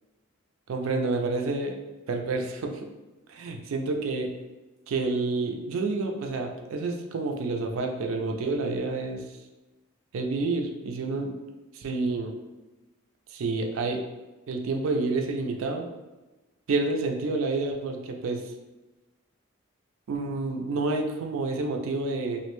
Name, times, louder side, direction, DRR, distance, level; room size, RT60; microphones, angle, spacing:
voice 1, 0.7-1.7 2.1-2.9 3.3-4.3 4.9-9.3 10.1-11.3 11.7-12.3 13.3-14.0 14.5-15.9 16.7-18.4 20.1-22.4, right 3 dB, 75° right, 4 dB, 0.4 m, -29 dB
2.5 x 2.1 x 3.0 m, 1.1 s
head